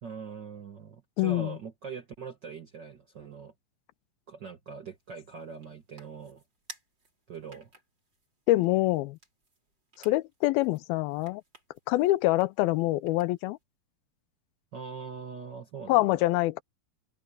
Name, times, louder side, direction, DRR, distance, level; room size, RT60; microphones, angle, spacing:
voice 1, 0.0-3.5 4.3-6.4 7.3-7.7 14.7-16.2, right 6 dB, 80° right, 0.9 m, -42 dB
voice 2, 1.2-1.5 8.5-9.2 10.0-11.4 11.9-13.6 15.9-16.6, left 18 dB, 90° left, 2.6 m, -25 dB
sound 1, 4.9-13.6, right 3 dB, 30° right, 6.0 m, -56 dB
open air
omnidirectional pair, 4.2 m